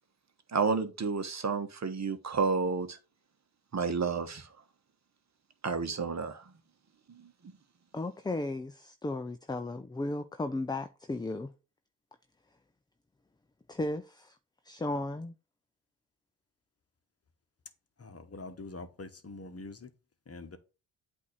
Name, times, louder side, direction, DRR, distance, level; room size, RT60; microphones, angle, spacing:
voice 1, 0.5-3.0 3.7-4.5 5.6-6.4, right 5 dB, 35° right, 1.1 m, -30 dB
voice 2, 7.9-11.5 13.7-14.4 14.6-15.3, left 2 dB, 10° left, 0.5 m, -35 dB
voice 3, 18.0-19.9 20.3-20.6, left 3 dB, 30° left, 1.2 m, -44 dB
8.3 x 2.8 x 6.1 m
supercardioid pair, 50°, 47 cm